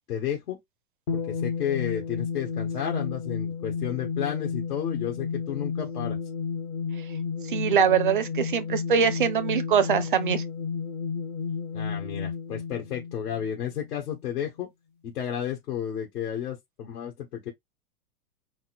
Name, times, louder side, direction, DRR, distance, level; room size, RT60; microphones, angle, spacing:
voice 1, 0.1-0.6 1.1-6.2 11.7-14.7 15.0-17.5, left 9 dB, 70° left, 1.7 m, -32 dB
sound 1, 1.1-13.9, left 6 dB, 30° left, 0.7 m, -32 dB
voice 2, 7.5-10.4, right 7 dB, 35° right, 0.4 m, -23 dB
4.2 x 2.2 x 4.2 m
supercardioid pair, 175°, 45 cm